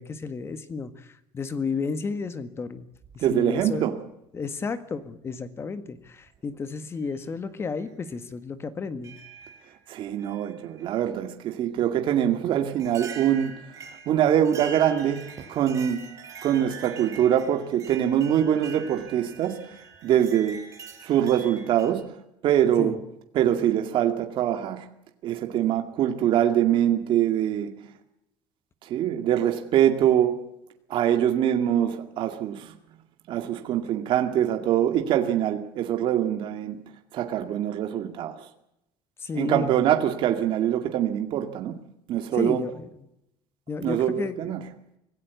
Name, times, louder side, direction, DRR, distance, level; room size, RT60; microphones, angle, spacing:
voice 1, 0.0-2.8 3.1-3.9 4.3-9.1 22.8-23.0 39.2-39.8 42.3-43.1 43.7-44.5, left 4 dB, 25° left, 1.7 m, -32 dB
sound 1, 2.9-3.8 4.9-5.0 6.1-6.4 7.0-7.1 7.8-7.9 9.0-9.7 10.2-11.0 12.1-12.2 12.8-21.9, right 6 dB, 30° right, 5.9 m, -44 dB
voice 2, 3.2-3.9 9.9-13.6 14.1-16.1 16.4-19.7 20.0-20.6 21.0-22.1 22.4-23.0 23.3-24.9 25.2-27.7 28.8-30.4 30.9-32.7 33.3-36.8 37.1-38.4 39.3-41.8 42.1-42.6 43.8-44.6, right 10 dB, 50° right, 2.3 m, -24 dB
26.0 x 16.5 x 8.4 m
cardioid pair, 150°, 10 cm